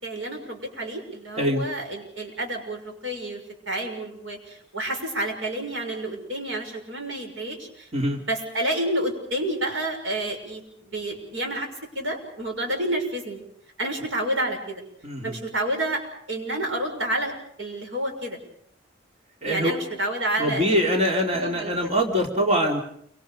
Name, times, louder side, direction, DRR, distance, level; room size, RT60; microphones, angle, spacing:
voice 1, 0.0-3.4 3.7-7.9 8.3-13.4 13.8-14.8 15.2-16.0 16.3-17.3 17.6-18.4 19.4-21.0 21.3-21.9, right 1 dB, 90° right, 3 dB, 6.5 m, -29 dB
voice 2, 15.0-15.4 19.4-19.7 20.4-22.8, equal, 35° right, 0 dB, 3.3 m, -23 dB
29.0 x 25.0 x 5.2 m, 0.66 s
head